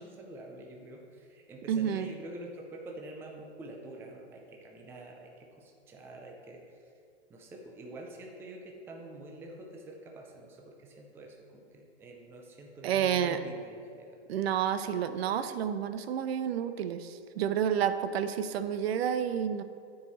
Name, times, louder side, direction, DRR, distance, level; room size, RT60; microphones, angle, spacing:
voice 1, 0.0-6.6 7.3-14.2, right 1 dB, 5° right, 0 dB, 0.4 m, -47 dB
voice 2, 1.7-2.1 12.8-13.4 14.3-19.6, right 8 dB, 60° right, 11 dB, 0.6 m, -30 dB
10.5 x 4.7 x 4.1 m, 2.4 s
hypercardioid pair, 145°, 34 cm